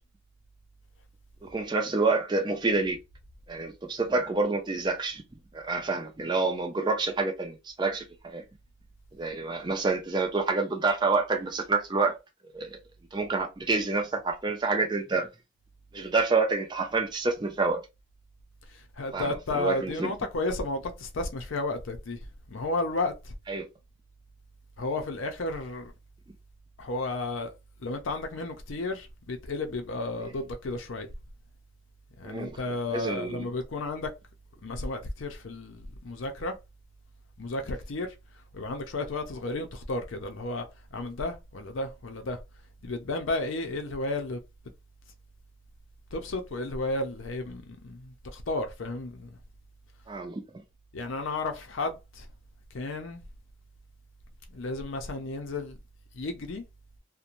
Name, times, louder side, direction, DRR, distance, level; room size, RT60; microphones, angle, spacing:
voice 1, 1.4-3.0 3.5-5.2 5.5-8.4 9.2-12.2 12.5-12.8 13.1-15.3 15.9-17.8 19.1-20.1 23.5-23.7 32.2-32.6 32.9-33.5 50.1-50.4, right 3 dB, 20° right, 0.4 m, -28 dB
voice 2, 18.7-22.2 22.5-23.3 24.8-25.9 26.8-31.1 32.2-34.1 34.6-36.5 37.4-38.1 38.5-42.4 42.8-44.4 46.1-49.4 50.9-52.3 52.7-53.2 54.5-55.8 56.1-56.6, left 2 dB, 75° left, 0.5 m, -33 dB
2.5 x 2.1 x 2.9 m
head